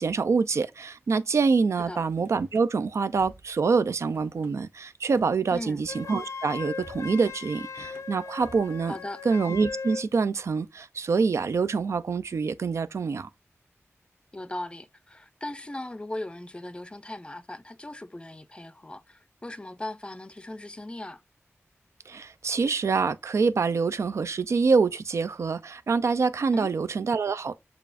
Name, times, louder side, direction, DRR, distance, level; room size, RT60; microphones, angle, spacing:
voice 1, 0.0-8.9 9.2-13.3 22.1-27.5, right 4 dB, 70° right, 0.3 m, -26 dB
Car / Slam, 2.2-2.6 3.1-3.6 3.9-4.5 5.1-5.3 5.7-6.3 6.8-7.2 7.6-8.1 8.4-8.8, right 1 dB, 45° right, 1.0 m, -51 dB
voice 2, 5.5-5.8 8.9-9.2 14.3-21.2 26.5-26.7, left 1 dB, 20° left, 0.5 m, -38 dB
Wind instrument woodwind instrument, 5.9-10.1, left 5 dB, 90° left, 0.7 m, -38 dB
6.7 x 2.4 x 2.4 m
wide cardioid pair, 75°, 5 cm